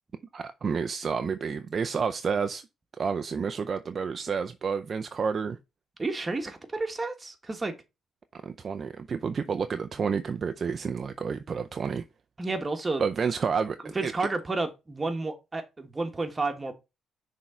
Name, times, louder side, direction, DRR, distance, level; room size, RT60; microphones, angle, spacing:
voice 1, 0.3-2.7 3.0-5.6 8.3-12.0 13.0-14.1, right 6 dB, 45° right, 0.5 m, -30 dB
voice 2, 6.0-7.7 12.4-13.1 13.8-16.7, right 3 dB, 20° right, 1.4 m, -31 dB
6.2 x 3.7 x 4.3 m
cardioid pair, 90°, 0 cm